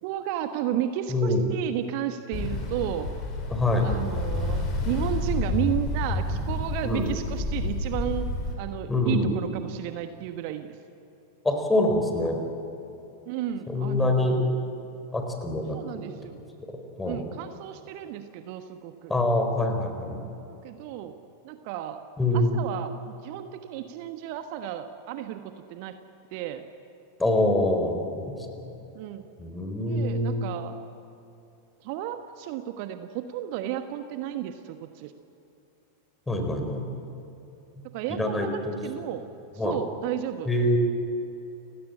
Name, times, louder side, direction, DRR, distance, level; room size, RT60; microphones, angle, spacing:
voice 1, 0.0-3.1 3.8-8.3 8.6-10.8 13.3-14.5 15.7-16.4 17.0-19.1 20.5-21.2 21.4-22.0 22.3-26.0 26.3-26.6 28.9-29.2 29.9-30.8 31.8-35.1 37.9-39.2 39.5-40.5, right 11 dB, 45° right, 8 dB, 1.3 m, -33 dB
voice 2, 1.1-1.4 3.5-3.9 6.8-7.1 8.9-9.4 11.4-12.4 13.7-14.4 15.1-16.0 17.0-17.2 19.1-20.2 22.2-22.6 27.2-28.7 29.4-30.4 36.3-36.8 38.2-38.7 39.6-39.8 40.5-40.8, left 1 dB, 10° left, 4 dB, 4.6 m, -25 dB
Ocean, 2.3-8.6, left 2 dB, 35° left, 5.5 m, -29 dB
30.0 x 17.0 x 8.9 m, 2.8 s
figure-of-eight pair, 90°, 0 cm